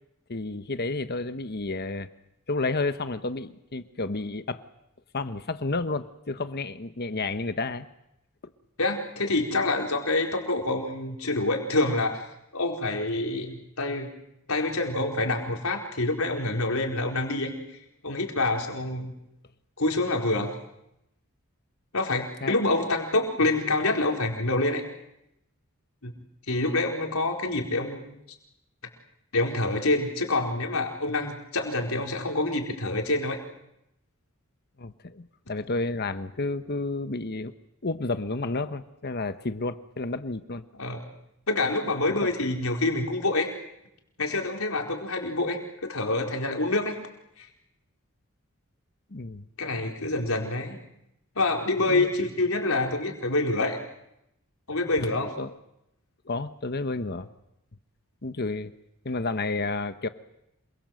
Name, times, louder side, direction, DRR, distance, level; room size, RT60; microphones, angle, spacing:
voice 1, 0.3-2.1 2.5-4.6 5.1-7.9 22.1-22.6 34.8-37.5 37.8-40.6 42.2-42.3 49.1-49.4 51.9-52.1 55.1-55.5 56.3-57.3 58.2-58.7 59.0-60.1, left 3 dB, 45° left, 10 dB, 1.1 m, -31 dB
voice 2, 8.8-12.3 12.5-14.1 14.5-17.5 18.0-19.1 19.8-20.5 21.9-24.8 26.0-26.1 26.5-28.1 29.3-33.4 40.8-41.0 41.5-43.5 44.2-47.0 47.4-47.5 49.6-50.8 51.4-53.8 54.7-55.3, left 2 dB, 75° left, 2 dB, 4.6 m, -26 dB
27.5 x 23.0 x 7.8 m, 0.82 s
head